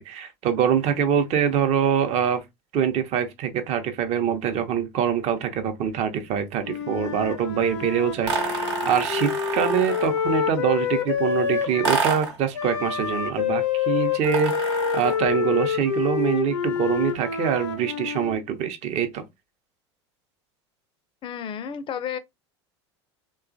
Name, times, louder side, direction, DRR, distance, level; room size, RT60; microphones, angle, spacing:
voice 1, 0.0-2.4 2.7-19.2, right 8 dB, 50° right, 0.7 m, -24 dB
Wind instrument woodwind instrument, 6.6-12.1 12.5-18.4, left 7 dB, 90° left, 0.6 m, -27 dB
sound 1, 8.2-10.2 11.8-12.4 14.2-15.3, right 4 dB, 75° right, 1.0 m, -28 dB
voice 2, 21.2-22.2, left 8 dB, 35° left, 0.4 m, -31 dB
2.9 x 2.3 x 2.5 m
hypercardioid pair, 80°, 15 cm